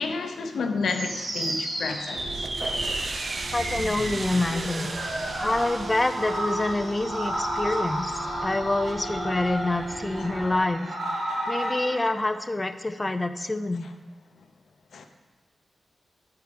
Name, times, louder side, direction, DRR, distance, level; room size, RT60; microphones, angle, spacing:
voice 1, 0.0-2.5 7.7-7.8 14.9-15.1, left 4 dB, 85° left, 6 dB, 0.7 m, -30 dB
sound 1, 0.8-12.1, right 1 dB, 70° right, 3.0 m, -32 dB
sound 2, 2.1-10.6, right 3 dB, 45° right, 0.4 m, -37 dB
voice 2, 3.5-13.9, left 2 dB, 20° left, 8 dB, 0.5 m, -27 dB
9.5 x 4.6 x 5.1 m, 1.2 s
wide cardioid pair, 105°, 0 cm